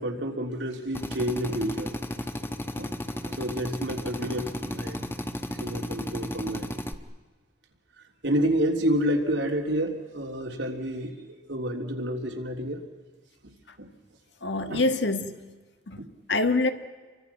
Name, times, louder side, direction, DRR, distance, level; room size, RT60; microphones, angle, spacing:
voice 1, 0.0-1.9 2.8-2.9 3.2-5.0 5.5-6.7 8.2-11.1 11.5-12.8 13.4-13.9 14.7-14.9, equal, 85° right, 3.4 m, -29 dB
Drill, 0.9-6.9, equal, 15° left, 1.2 m, -34 dB
voice 2, 14.4-15.3 15.9-16.7, left 2 dB, 70° left, 1.7 m, -25 dB
30.0 x 24.5 x 5.9 m
head